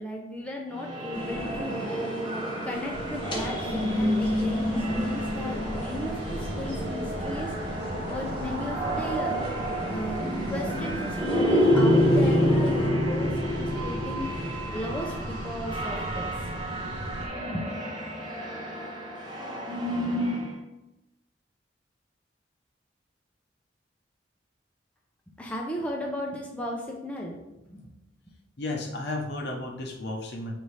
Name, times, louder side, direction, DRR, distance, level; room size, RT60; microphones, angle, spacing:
voice 1, 0.0-2.2 2.6-9.4 9.9-16.3 17.2-17.3 17.5-17.7 25.4-27.4 27.7-27.9, left 1 dB, 5° left, -2 dB, 0.5 m, -36 dB
sound 1, 0.8-20.6, equal, 25° right, 0.9 m, -28 dB
sound 2, 1.1-12.9, equal, 25° left, 1.0 m, -37 dB
sound 3, 2.9-17.3, right 1 dB, 60° right, 0.6 m, -37 dB
voice 2, 28.6-30.5, left 2 dB, 60° left, 1 dB, 0.8 m, -33 dB
5.3 x 2.7 x 3.2 m, 0.95 s
head